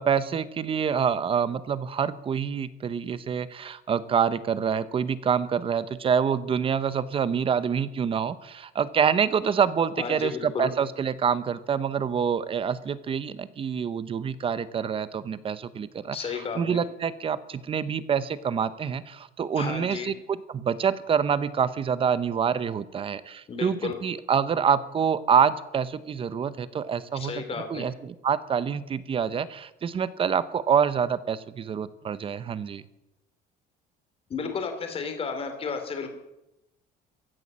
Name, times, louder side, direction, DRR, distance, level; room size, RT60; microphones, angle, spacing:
voice 1, 0.0-16.2 16.5-27.4 27.7-32.8, right 7 dB, 30° right, 16 dB, 0.8 m, -26 dB
voice 2, 10.0-10.7 16.1-16.8 19.5-20.1 23.5-23.9 27.1-27.9 34.3-36.1, left 5 dB, 35° left, 6 dB, 2.9 m, -33 dB
15.5 x 11.0 x 7.4 m, 0.91 s
cardioid pair, 140°, 18 cm